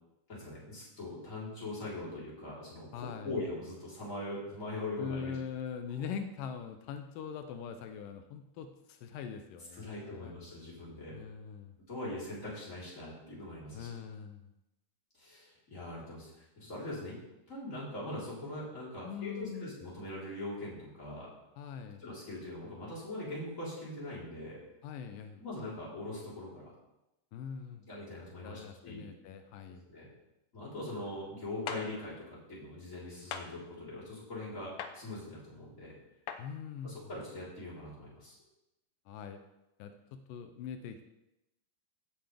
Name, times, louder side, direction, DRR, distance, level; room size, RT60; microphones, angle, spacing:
voice 1, 0.3-5.4 5.9-6.0 9.8-11.2 11.9-13.9 15.2-17.2 17.5-21.3 22.0-24.6 25.4-26.7 27.8-29.1 29.9-30.1 30.5-36.0 36.8-38.4, left 2 dB, 20° left, -7 dB, 4.2 m, -42 dB
voice 2, 2.9-3.4 5.0-10.3 11.1-11.7 13.7-14.5 19.0-19.7 21.6-22.0 24.8-25.4 27.3-27.9 28.4-29.9 36.4-37.1 39.1-39.4 39.8-41.0, left 7 dB, 85° left, 7 dB, 2.4 m, -42 dB
sound 1, 31.7-31.8 33.3-33.5 34.8-34.9 36.3-36.4, left 8 dB, 70° left, 1.6 m, -38 dB
16.5 x 7.7 x 3.5 m, 0.91 s
omnidirectional pair, 3.8 m